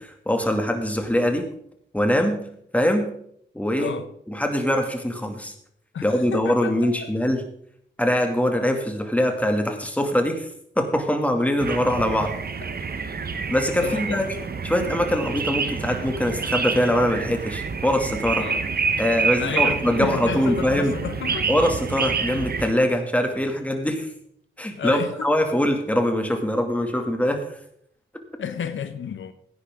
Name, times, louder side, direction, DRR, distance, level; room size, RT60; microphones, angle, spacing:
voice 1, 0.0-1.5 1.9-2.4 2.7-3.1 3.5-3.9 4.3-5.5 6.0-7.4 8.0-10.5 10.8-12.3 13.5-14.2 14.6-18.5 19.0-20.9 21.5-24.1 24.6-27.6, equal, 5° left, 2.4 m, -23 dB
voice 2, 3.8-4.1 5.9-6.7 7.0-7.1 13.8-14.2 18.4-18.6 19.4-21.5 24.8-25.4 28.4-29.3, left 7 dB, 80° left, 0.9 m, -31 dB
sound 1, 11.6-22.7, right 5 dB, 50° right, 1.1 m, -28 dB
16.0 x 10.0 x 3.7 m
cardioid pair, 75°, 20 cm